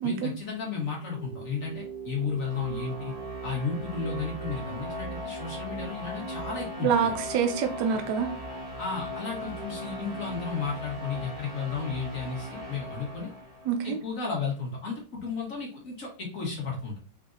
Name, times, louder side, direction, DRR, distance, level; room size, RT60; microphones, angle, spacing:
voice 1, 0.0-3.1 3.4-7.1 8.8-13.3 13.8-17.0, left 5 dB, 45° left, -2 dB, 1.4 m, -33 dB
sound 1, 0.9-14.0, right 1 dB, 40° right, 0.5 m, -38 dB
voice 2, 6.8-8.3 13.7-14.0, right 7 dB, 75° right, 5 dB, 1.0 m, -26 dB
5.0 x 3.6 x 2.5 m, 0.37 s
omnidirectional pair, 2.4 m